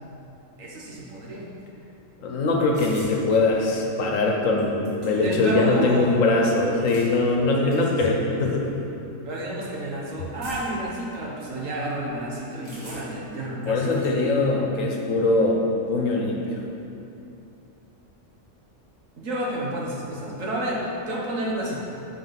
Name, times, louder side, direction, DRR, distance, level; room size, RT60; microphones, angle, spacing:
voice 1, 0.6-1.5 5.2-6.1 7.6-8.3 9.2-14.1 19.2-21.8, right 1 dB, 90° right, -3 dB, 1.6 m, -30 dB
voice 2, 2.2-8.1 8.4-8.8 13.6-15.6 15.9-16.4, left 2 dB, 85° left, 0 dB, 1.3 m, -22 dB
sound 1, 2.7-3.2 4.3-4.4 4.6-5.4 6.6-7.1 7.7-7.8 8.6-8.8 10.4-10.8 12.6-13.3 13.6-14.2, right 1 dB, 45° right, 2.1 m, -44 dB
7.8 x 4.3 x 5.9 m, 2.8 s
omnidirectional pair, 1.3 m